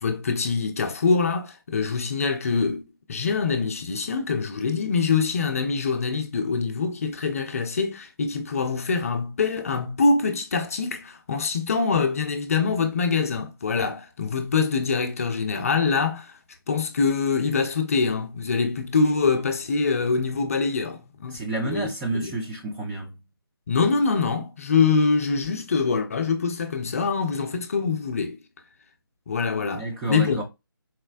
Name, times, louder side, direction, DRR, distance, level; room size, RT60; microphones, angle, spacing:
voice 1, 0.0-2.8 3.1-16.4 16.7-21.4 21.6-21.9 22.1-22.3 23.7-28.4 29.3-30.4, left 4 dB, 40° left, 0.6 m, -24 dB
voice 2, 21.3-23.2 29.8-30.4, right 2 dB, 5° right, 0.4 m, -30 dB
4.1 x 2.1 x 2.3 m
figure-of-eight pair, 150°, 12 cm